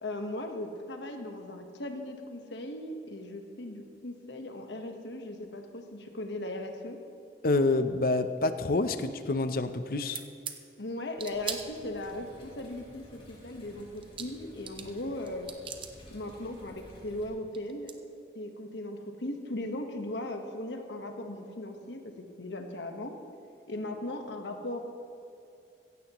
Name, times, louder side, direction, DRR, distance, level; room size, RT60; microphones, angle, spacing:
voice 1, 0.0-7.0 10.8-15.5 16.1-17.9 18.3-23.2 23.7-24.8, left 1 dB, 85° left, 5 dB, 1.3 m, -38 dB
voice 2, 7.4-10.2, left 2 dB, 55° left, 10 dB, 0.6 m, -27 dB
sound 1, 10.1-10.6 11.2-12.2 13.7-13.8 14.0-15.0 15.3-15.9 17.2-17.3 17.5-18.0, right 7 dB, 30° right, 0.7 m, -39 dB
sound 2, 11.3-17.3, equal, 35° left, 2.8 m, -53 dB
16.0 x 15.0 x 3.0 m, 2.5 s
head